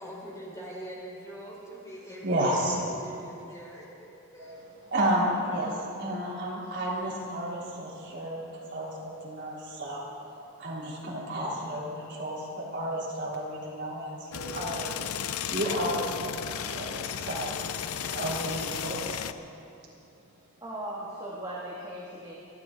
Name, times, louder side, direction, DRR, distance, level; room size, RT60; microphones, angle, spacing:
voice 1, 0.0-2.4 3.0-4.6, equal, 15° left, -5 dB, 4.2 m, -43 dB
voice 2, 2.2-2.8 4.4-4.5 4.9-10.1 10.6-15.0 15.5-17.6 17.9-19.3, right 1 dB, 50° right, -5 dB, 3.4 m, -32 dB
sound 1, 14.3-19.3, left 9 dB, 75° left, 0.5 m, -34 dB
voice 3, 20.6-22.3, right 1 dB, 20° right, -7 dB, 2.1 m, -38 dB
28.5 x 11.5 x 3.8 m, 2.8 s
head